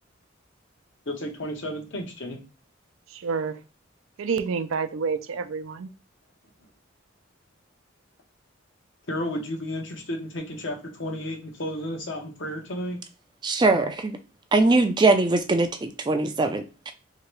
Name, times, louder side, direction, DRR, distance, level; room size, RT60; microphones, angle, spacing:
voice 1, 1.1-2.4 9.1-13.0, left 1 dB, 65° left, 0.9 m, -32 dB
voice 2, 3.1-3.6 4.2-5.9, right 5 dB, 90° right, 0.4 m, -28 dB
voice 3, 13.4-14.2 14.5-16.9, right 3 dB, 20° right, 0.3 m, -21 dB
3.3 x 2.8 x 3.0 m
head